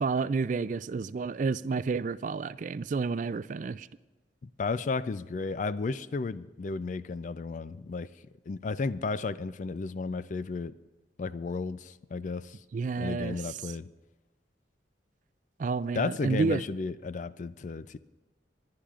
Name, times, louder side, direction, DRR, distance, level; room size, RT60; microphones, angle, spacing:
voice 1, 0.0-3.9 12.7-13.4 15.6-16.6, right 4 dB, 45° right, 0.3 m, -30 dB
voice 2, 4.4-8.1 8.5-10.8 11.2-12.6 13.0-13.9 15.9-18.0, left 4 dB, 45° left, 0.3 m, -33 dB
27.5 x 11.5 x 2.5 m
head